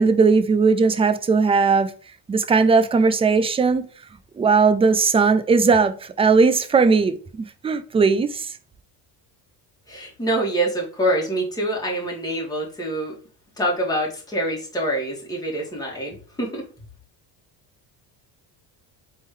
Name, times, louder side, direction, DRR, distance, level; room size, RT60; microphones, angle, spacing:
voice 1, 0.0-1.9 2.3-3.9 4.4-8.6, right 4 dB, 15° right, 0.3 m, -18 dB
voice 2, 9.9-13.2 13.6-16.6, right 1 dB, 10° left, 2.0 m, -25 dB
4.3 x 3.7 x 3.2 m
cardioid pair, 115°, 44 cm